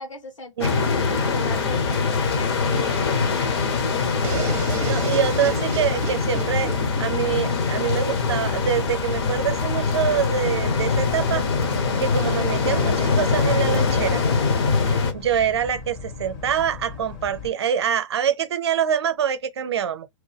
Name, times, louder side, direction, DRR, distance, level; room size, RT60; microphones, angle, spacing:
voice 1, 0.0-3.2, left 2 dB, 75° left, 1.5 m, -37 dB
sound 1, 0.6-15.1, left 4 dB, 50° left, 0.9 m, -23 dB
sound 2, 4.2-8.0, right 8 dB, 15° right, 0.3 m, -34 dB
voice 2, 4.9-11.5 12.0-14.2 14.7-20.1, right 8 dB, 55° right, 0.6 m, -25 dB
Boat Water vehicle, 8.1-17.5, left 4 dB, 25° left, 0.6 m, -38 dB
3.0 x 2.1 x 3.3 m
figure-of-eight pair, 115°, 16 cm